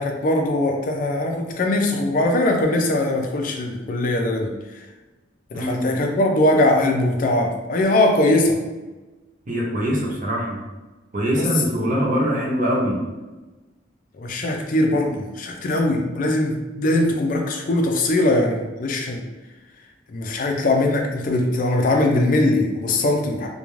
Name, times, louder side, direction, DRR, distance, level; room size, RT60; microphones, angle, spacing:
voice 1, 0.0-4.5 5.5-8.6 11.3-11.5 14.2-19.3 20.1-23.5, left 1 dB, 45° left, 3 dB, 0.4 m, -21 dB
voice 2, 5.5-6.0 9.5-10.6 11.1-13.0, equal, 45° right, -3 dB, 0.6 m, -23 dB
2.4 x 2.2 x 3.0 m, 1.2 s
head